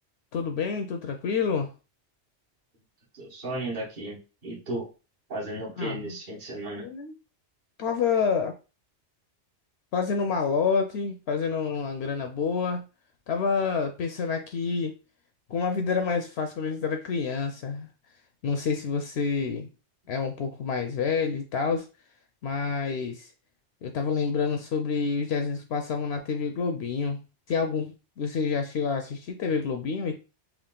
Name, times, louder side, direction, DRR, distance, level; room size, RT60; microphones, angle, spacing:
voice 1, 0.3-1.7 5.8-6.2 6.8-7.1 7.8-8.5 9.9-12.8 13.3-15.0 15.5-17.9 18.4-19.7 20.1-21.9 22.4-23.3 23.8-27.2 27.5-30.2, left 5 dB, 70° left, 6 dB, 0.8 m, -28 dB
voice 2, 3.1-4.9 5.3-6.9, right 1 dB, 45° right, -3 dB, 1.4 m, -35 dB
3.6 x 2.4 x 3.7 m, 0.31 s
omnidirectional pair, 1.2 m